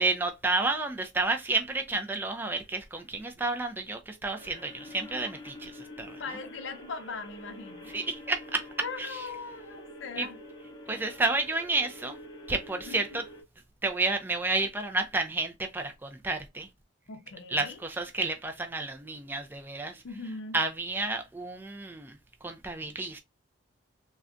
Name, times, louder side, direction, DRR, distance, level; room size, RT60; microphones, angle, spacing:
voice 1, 0.0-6.2 7.9-8.7 9.0-9.2 10.2-10.3 10.9-12.2 12.5-13.2 13.8-16.7 17.5-20.0 20.5-22.2 22.4-23.2, right 3 dB, 10° right, 0.3 m, -31 dB
sound 1, 4.4-13.4, left 1 dB, 20° left, 0.7 m, -47 dB
voice 2, 6.2-7.9 8.8-10.4 12.9-13.2 17.1-17.8 20.0-20.6, left 4 dB, 70° left, 0.5 m, -40 dB
3.7 x 2.2 x 2.4 m
head